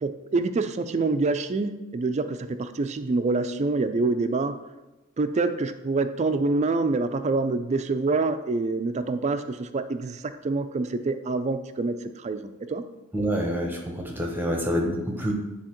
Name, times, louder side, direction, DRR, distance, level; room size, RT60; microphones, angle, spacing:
voice 1, 0.0-4.6 5.2-12.8, right 3 dB, 30° right, 10 dB, 0.3 m, -26 dB
voice 2, 13.1-15.3, equal, 10° right, 0 dB, 0.8 m, -27 dB
9.9 x 3.5 x 3.0 m, 1.0 s
head